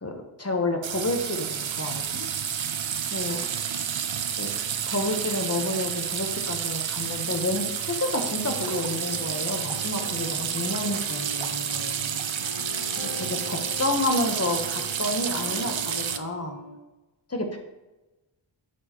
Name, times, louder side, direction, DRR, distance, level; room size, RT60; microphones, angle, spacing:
voice 1, 0.0-2.3 3.1-3.4 4.4-4.5 4.9-12.2 13.1-16.6 17.3-17.6, left 2 dB, 30° left, 3 dB, 1.2 m, -30 dB
sound 1, 0.8-16.2, right 8 dB, 65° right, 0.6 m, -30 dB
sound 2, 8.0-16.8, left 1 dB, 50° left, 1.9 m, -41 dB
11.0 x 4.7 x 3.0 m, 1.1 s
wide cardioid pair, 60°, 49 cm